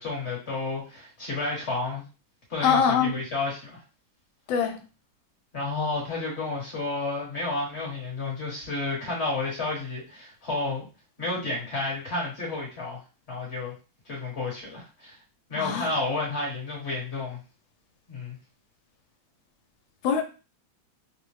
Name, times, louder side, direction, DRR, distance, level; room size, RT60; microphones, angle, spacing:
voice 1, 0.0-2.0 2.5-3.8 5.5-10.9 11.2-13.0 13.3-13.7 14.0-15.2 15.5-17.4 18.1-18.4, left 3 dB, 40° left, 1.3 m, -31 dB
voice 2, 2.6-3.2 4.5-4.8 15.6-15.9 20.0-20.2, left 6 dB, 80° left, 1.3 m, -23 dB
3.8 x 2.0 x 3.1 m
omnidirectional pair, 2.2 m